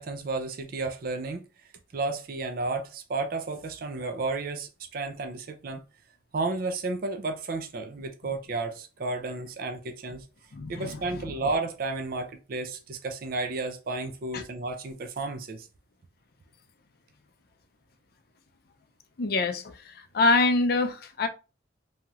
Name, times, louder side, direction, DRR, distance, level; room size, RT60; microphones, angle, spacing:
voice 1, 0.0-1.4 1.9-5.8 6.3-10.3 10.7-15.7, right 3 dB, 50° right, 0.4 m, -32 dB
voice 2, 10.5-10.9 14.3-14.4 19.2-19.7 20.1-21.3, left 3 dB, 55° left, 0.4 m, -24 dB
3.0 x 2.8 x 2.3 m
head